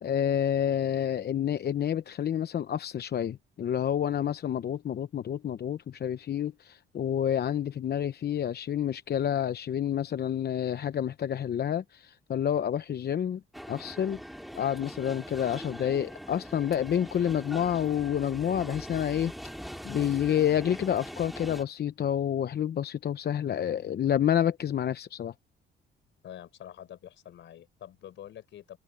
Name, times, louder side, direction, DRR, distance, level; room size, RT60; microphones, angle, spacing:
voice 1, 0.0-13.4 13.7-14.2 14.6-19.3 19.8-25.3, left 9 dB, 55° left, 0.9 m, -29 dB
sound 1, 13.5-21.6, equal, ahead, 3.2 m, -42 dB
voice 2, 26.2-28.8, left 11 dB, 70° left, 4.4 m, -46 dB
cardioid pair, 90°, 20 cm